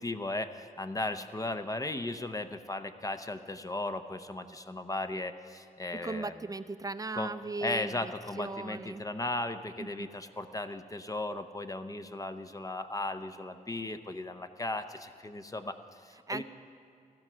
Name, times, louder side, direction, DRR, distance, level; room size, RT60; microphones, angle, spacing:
voice 1, 0.0-6.3 7.1-7.3 7.6-16.4, left 2 dB, 20° left, 9 dB, 0.7 m, -36 dB
voice 2, 5.9-9.1 9.8-10.1 16.3-16.4, right 3 dB, 25° right, 12 dB, 0.5 m, -38 dB
15.5 x 12.5 x 6.2 m, 2.6 s
cardioid pair, 95°, 16 cm